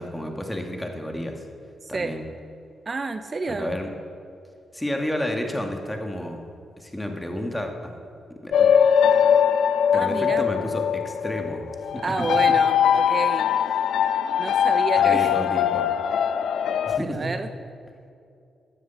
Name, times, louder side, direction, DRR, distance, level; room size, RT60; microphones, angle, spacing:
voice 1, 0.0-1.4 1.9-2.2 3.5-3.9 4.7-6.4 6.8-8.0 8.4-8.7 9.9-11.6 11.9-12.3 14.2-14.4 14.9-15.9 16.9-17.3, left 1 dB, 15° left, 3 dB, 2.1 m, -31 dB
voice 2, 1.8-2.1 2.9-3.7 9.9-10.4 12.0-13.5 14.4-15.3 16.9-17.5, right 3 dB, 45° right, 9 dB, 0.7 m, -29 dB
sound 1, 8.5-17.0, left 8 dB, 75° left, 0.4 m, -21 dB
13.0 x 7.8 x 7.0 m, 2.5 s
hypercardioid pair, 40°, 0 cm